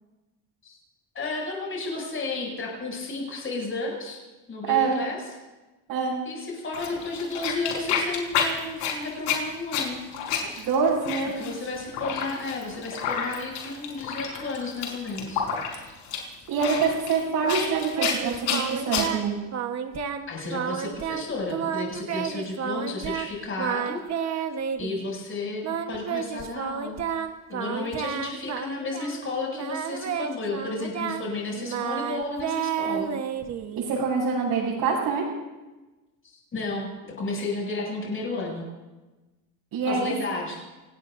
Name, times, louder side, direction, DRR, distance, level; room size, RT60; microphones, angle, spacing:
voice 1, 1.1-4.2 4.5-5.2 6.2-10.0 11.4-15.4 20.3-24.5 24.8-33.1 36.5-36.9 37.2-38.7 39.8-40.6, left 3 dB, 30° left, -1 dB, 7.1 m, -32 dB
sound 1, 6.7-19.1, left 7 dB, 80° left, 4.6 m, -30 dB
voice 2, 10.6-11.5 16.5-19.4 33.8-35.2 39.7-40.1, right 5 dB, 65° right, -8 dB, 7.3 m, -25 dB
Singing, 17.4-19.3 19.5-20.2 20.5-23.3 23.6-25.0 25.6-29.2 29.5-34.0, right 8 dB, 40° right, 1.3 m, -31 dB
28.5 x 18.5 x 2.7 m, 1.1 s
cardioid pair, 125°, 40 cm